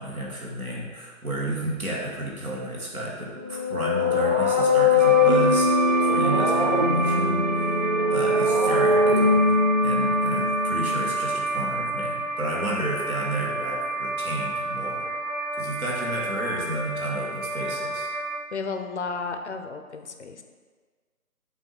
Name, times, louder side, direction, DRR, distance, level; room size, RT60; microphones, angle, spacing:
voice 1, 0.0-7.7 8.1-15.1 15.6-18.1, right 1 dB, 80° right, -3 dB, 1.8 m, -32 dB
sound 1, 3.4-11.1, left 3 dB, 30° right, 0.5 m, -22 dB
sound 2, 5.0-18.4, right 3 dB, 60° right, 0.9 m, -29 dB
voice 2, 18.5-20.4, left 4 dB, 55° left, 6 dB, 0.6 m, -33 dB
7.6 x 2.7 x 4.7 m, 1.5 s
figure-of-eight pair, 140°, 43 cm